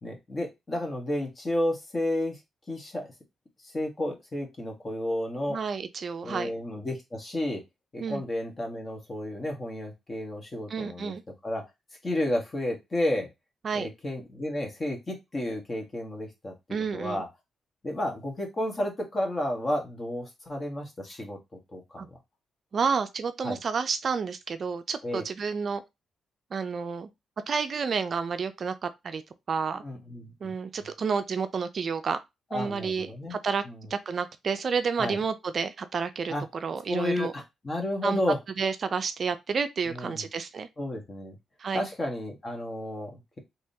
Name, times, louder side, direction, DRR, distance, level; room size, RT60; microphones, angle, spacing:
voice 1, 0.0-2.4 2.7-3.1 3.6-5.6 6.2-7.6 7.9-11.1 11.4-11.6 12.0-13.3 13.7-16.5 16.9-17.3 17.8-21.4 21.7-22.2 23.4-23.6 25.0-25.2 29.8-30.5 32.5-33.4 33.6-33.9 35.0-35.2 36.3-36.4 36.9-38.4 39.9-40.3 40.8-41.3 41.7-43.4, left 1 dB, 30° left, 1.3 m, -32 dB
voice 2, 5.5-6.5 8.0-8.2 10.7-11.2 13.6-13.9 16.7-17.2 22.0-22.1 22.7-25.8 26.5-27.1 27.5-29.2 29.5-29.8 30.4-32.2 32.5-33.6 33.9-36.3 36.6-37.3 38.0-38.2 38.6-40.7 41.6-41.8, right 5 dB, 50° right, 0.4 m, -30 dB
3.6 x 2.9 x 2.7 m
cardioid pair, 85°, 0 cm